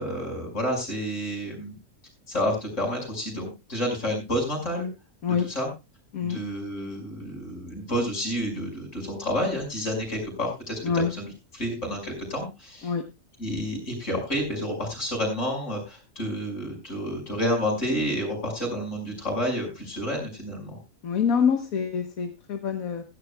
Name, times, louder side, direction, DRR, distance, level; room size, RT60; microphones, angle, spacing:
voice 1, 0.0-1.8 2.3-4.9 5.3-5.7 6.2-12.9 13.4-20.8, equal, 60° left, 1 dB, 6.2 m, -30 dB
voice 2, 21.0-23.0, left 6 dB, 85° left, 6 dB, 1.7 m, -25 dB
16.0 x 14.5 x 2.3 m, 0.25 s
omnidirectional pair, 1.4 m